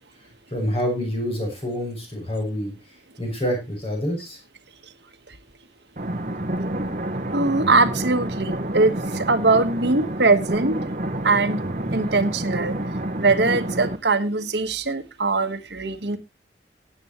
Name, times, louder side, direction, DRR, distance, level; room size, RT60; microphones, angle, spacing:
voice 1, 0.5-2.7 3.2-4.4, equal, 35° left, 1 dB, 6.3 m, -27 dB
sound 1, 6.0-14.0, right 1 dB, 45° right, 1.1 m, -28 dB
voice 2, 7.3-10.9 11.2-11.6 11.9-12.7 13.2-16.2, right 3 dB, 75° right, 9 dB, 1.4 m, -21 dB
17.0 x 8.8 x 3.0 m, 0.24 s
head